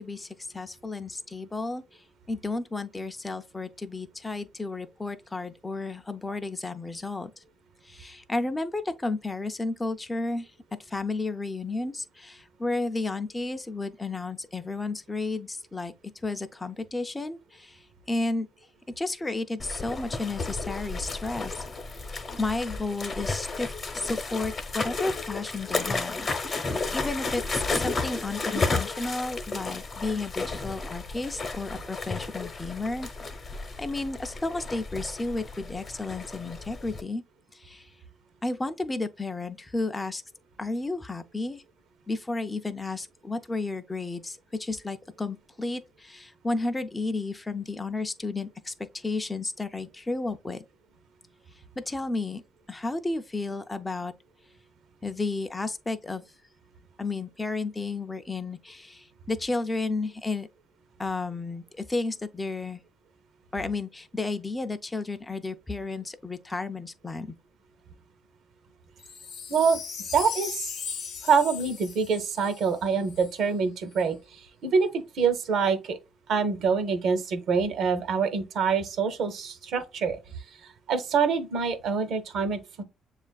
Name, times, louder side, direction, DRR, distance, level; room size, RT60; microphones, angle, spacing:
voice 1, 0.0-7.4 7.8-10.5 10.8-15.9 16.2-18.5 19.0-21.5 21.9-22.0 22.4-33.1 33.8-37.2 37.5-37.9 38.4-40.2 40.6-41.6 42.1-50.6 51.8-52.4 52.7-54.1 55.0-56.2 57.0-60.5 61.0-62.8 63.5-67.3, left 3 dB, 15° left, 0.4 m, -32 dB
sound 1, 19.6-37.0, left 3 dB, 40° left, 0.7 m, -33 dB
Wind chime, 69.0-73.4 73.9-74.0, left 6 dB, 80° left, 0.7 m, -38 dB
voice 2, 69.5-69.8 70.1-70.7 71.2-76.0 76.3-80.4 80.9-82.8, right 5 dB, 75° right, 0.7 m, -26 dB
7.2 x 2.4 x 2.2 m
cardioid pair, 90°, 0 cm